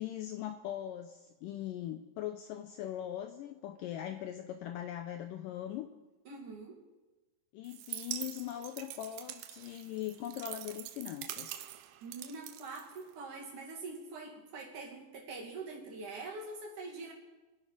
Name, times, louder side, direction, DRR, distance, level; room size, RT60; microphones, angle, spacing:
voice 1, 0.0-5.9 7.5-11.6, left 12 dB, 85° left, 8 dB, 1.9 m, -40 dB
voice 2, 6.3-6.8 12.0-17.1, right 3 dB, 55° right, -1 dB, 3.7 m, -44 dB
sound 1, 7.6-13.4, right 13 dB, 80° right, 2.0 m, -44 dB
25.0 x 11.0 x 4.9 m, 1.1 s
omnidirectional pair, 4.6 m